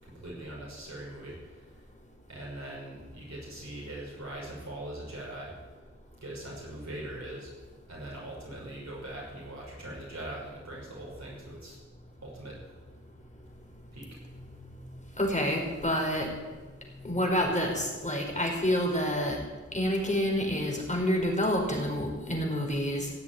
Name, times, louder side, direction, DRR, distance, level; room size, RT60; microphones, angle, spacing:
voice 1, 0.0-1.7 2.3-5.5 6.2-7.5 7.9-11.8 12.2-12.6 13.9-14.1, right 1 dB, 70° right, -5 dB, 6.1 m, -41 dB
voice 2, 15.2-16.3 17.0-19.4 19.7-23.1, equal, 25° left, 0 dB, 4.6 m, -28 dB
16.0 x 8.0 x 9.4 m, 1.3 s
wide cardioid pair, 60°, 29 cm